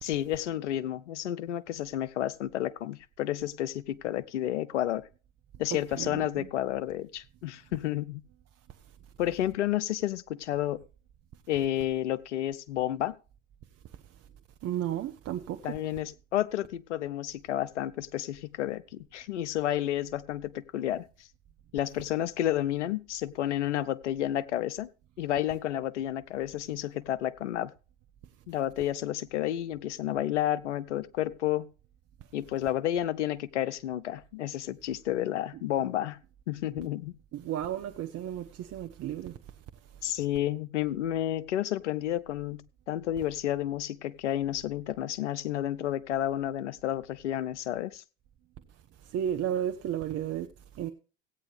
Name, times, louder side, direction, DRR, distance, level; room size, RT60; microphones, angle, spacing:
voice 1, 0.0-5.0 5.6-8.2 9.2-10.8 11.5-13.2 15.6-21.1 21.7-24.9 25.2-27.7 28.5-31.7 32.3-36.2 36.5-37.2 40.0-42.6 42.9-48.0, left 12 dB, 85° left, 0.7 m, -31 dB
voice 2, 5.7-6.5 14.6-15.8 37.3-39.4 49.0-50.9, right 10 dB, 45° right, 0.9 m, -33 dB
16.5 x 8.9 x 3.3 m
hypercardioid pair, 80°, 35 cm